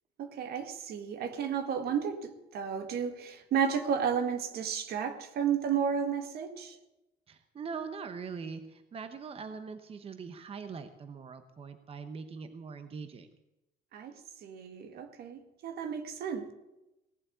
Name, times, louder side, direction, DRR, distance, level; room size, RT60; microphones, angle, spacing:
voice 1, 0.2-6.8 13.9-16.5, right 7 dB, 70° right, 8 dB, 1.9 m, -33 dB
voice 2, 7.3-13.3, right 5 dB, 35° right, 9 dB, 1.0 m, -42 dB
18.0 x 7.6 x 9.3 m, 0.96 s
cardioid pair, 110°, 17 cm